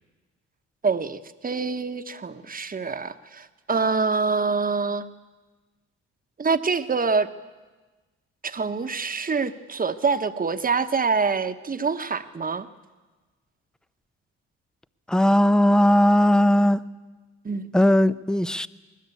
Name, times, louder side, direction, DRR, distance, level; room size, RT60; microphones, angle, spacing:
voice 1, 0.8-1.2 1.4-5.1 6.4-7.3 8.4-12.7 17.4-17.7, right 4 dB, 30° right, 9 dB, 1.1 m, -25 dB
voice 2, 15.1-16.8 17.7-18.7, left 1 dB, ahead, 15 dB, 0.6 m, -18 dB
20.5 x 20.0 x 8.4 m, 1.3 s
cardioid pair, 90°, 30 cm